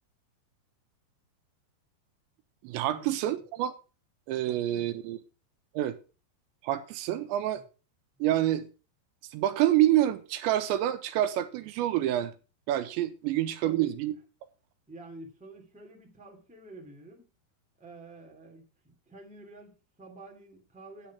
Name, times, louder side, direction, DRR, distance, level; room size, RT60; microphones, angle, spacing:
voice 1, 2.6-3.7 4.3-5.2 5.7-6.0 6.6-7.6 8.2-8.7 9.3-12.3 12.7-14.1, right 13 dB, 90° right, 3.2 m, -27 dB
voice 2, 4.4-4.9 13.2-13.3 13.6-13.9 14.9-17.3 17.8-21.1, right 2 dB, 5° right, 1.7 m, -48 dB
10.0 x 8.5 x 5.8 m
omnidirectional pair, 5.1 m